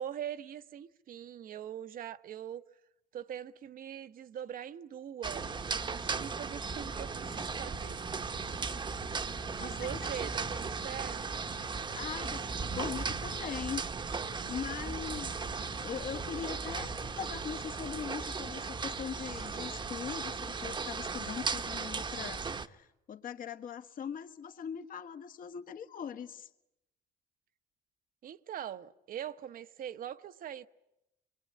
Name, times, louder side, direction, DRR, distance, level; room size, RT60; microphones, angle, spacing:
voice 1, 0.0-2.6 3.1-8.0 9.6-11.5 28.2-30.7, right 10 dB, 55° right, 1.1 m, -42 dB
sound 1, 5.2-22.7, right 4 dB, 25° right, 1.1 m, -37 dB
voice 2, 9.6-10.1 11.9-12.5 12.7-26.5, left 8 dB, 55° left, 1.6 m, -41 dB
25.0 x 24.0 x 9.7 m
cardioid pair, 110°, 17 cm